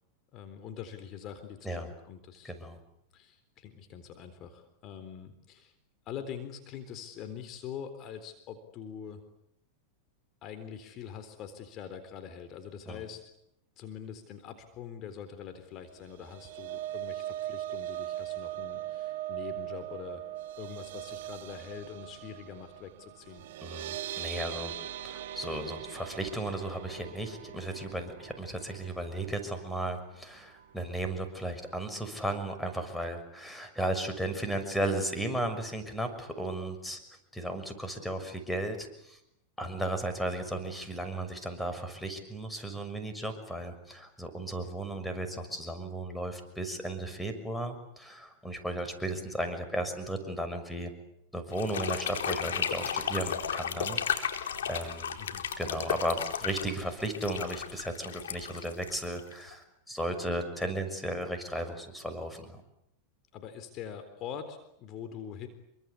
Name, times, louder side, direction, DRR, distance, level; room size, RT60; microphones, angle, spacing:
voice 1, 0.3-2.5 3.1-5.7 6.1-9.2 10.4-13.2 13.8-20.2 20.6-23.4 39.6-39.8 55.2-55.5 63.3-65.5, left 8 dB, 40° left, 9 dB, 3.9 m, -44 dB
voice 2, 2.4-2.8 12.9-13.0 23.6-24.7 25.0-37.0 37.3-39.2 39.6-50.9 51.3-54.3 54.7-55.2 55.6-62.6, right 1 dB, 5° left, 7 dB, 6.4 m, -35 dB
sound 1, 16.0-30.2 30.6-30.8 31.1-31.2, right 13 dB, 70° right, 1.7 m, -40 dB
sound 2, 51.5-59.5, left 8 dB, 85° left, 4.2 m, -34 dB
28.0 x 24.5 x 8.5 m, 0.79 s
hypercardioid pair, 110°, 0 cm